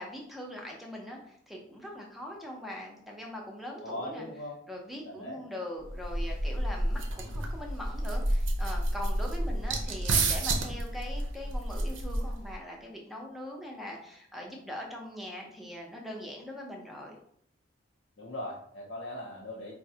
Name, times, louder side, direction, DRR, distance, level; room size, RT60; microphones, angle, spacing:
voice 1, 0.0-4.3 4.7-17.2, left 1 dB, ahead, -1 dB, 0.5 m, -41 dB
voice 2, 3.8-4.6 5.0-5.4 18.2-19.7, left 1 dB, 65° left, -6 dB, 0.6 m, -39 dB
sound 1, 5.9-12.5, right 1 dB, 85° right, 0.6 m, -30 dB
4.4 x 2.0 x 2.7 m, 0.69 s
head